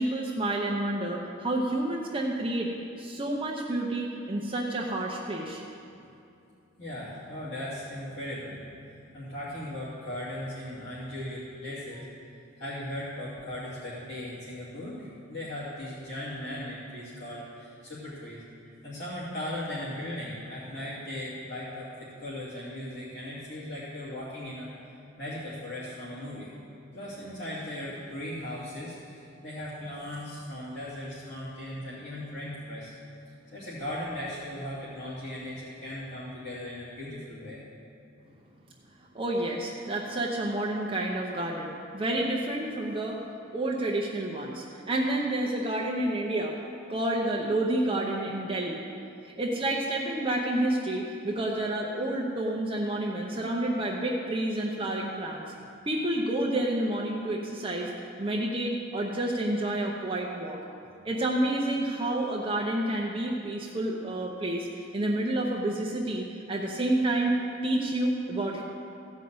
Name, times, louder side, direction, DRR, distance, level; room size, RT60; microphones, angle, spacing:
voice 1, 0.0-2.7 3.0-5.6 39.1-43.2 43.5-46.6 46.9-48.8 49.2-55.4 55.9-57.9 58.2-60.6 61.0-67.4 67.6-68.6, right 1 dB, 25° right, -2 dB, 0.8 m, -29 dB
voice 2, 6.8-12.0 12.6-18.4 18.8-24.7 25.2-26.5 26.9-32.9 33.5-37.6, left 1 dB, 55° left, -12 dB, 2.8 m, -38 dB
15.5 x 5.5 x 7.8 m, 2.6 s
head